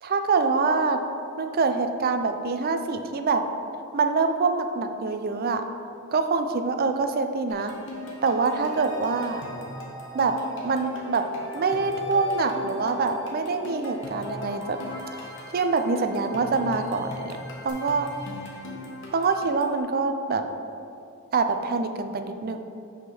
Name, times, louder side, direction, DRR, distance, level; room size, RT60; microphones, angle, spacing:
voice 1, 0.0-1.0 1.4-3.4 3.9-5.6 6.1-7.7 8.2-9.4 10.1-10.3 10.6-11.2 11.5-14.8 15.5-17.4 17.6-18.1 19.1-20.4 21.3-22.6, right 4 dB, 45° right, 7 dB, 0.4 m, -25 dB
sound 1, 7.5-19.8, left 1 dB, 60° left, 1.1 m, -40 dB
sound 2, 9.3-17.7, equal, 20° right, 1.2 m, -41 dB
6.3 x 3.7 x 5.9 m, 2.6 s
head